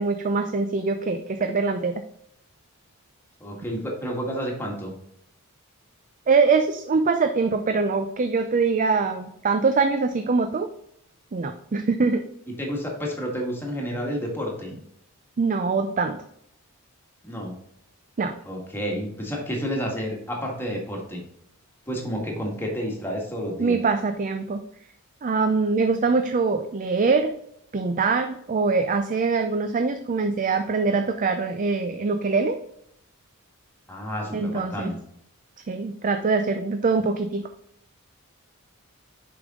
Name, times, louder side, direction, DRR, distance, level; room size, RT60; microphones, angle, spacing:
voice 1, 0.0-1.9 6.3-10.7 11.3-12.3 15.4-16.2 18.2-18.3 23.6-24.6 25.2-27.4 27.7-32.6 34.3-34.9 35.7-37.5, right 4 dB, 35° right, 7 dB, 0.4 m, -23 dB
voice 2, 3.4-4.9 12.5-14.7 17.2-17.5 18.4-21.2 21.9-23.8 33.9-35.0, equal, 10° left, -1 dB, 1.7 m, -30 dB
6.6 x 5.3 x 3.7 m, 0.71 s
head